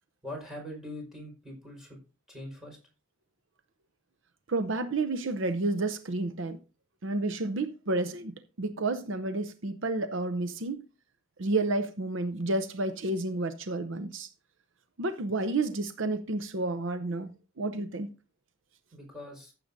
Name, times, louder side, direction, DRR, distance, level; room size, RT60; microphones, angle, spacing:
voice 1, 0.2-2.0 2.3-2.8 18.9-19.5, left 1 dB, ahead, 4.8 m, -42 dB
voice 2, 4.5-6.6 7.0-10.8 11.4-14.3 15.0-18.1, right 2 dB, 60° right, 0.7 m, -30 dB
14.5 x 7.5 x 2.7 m
head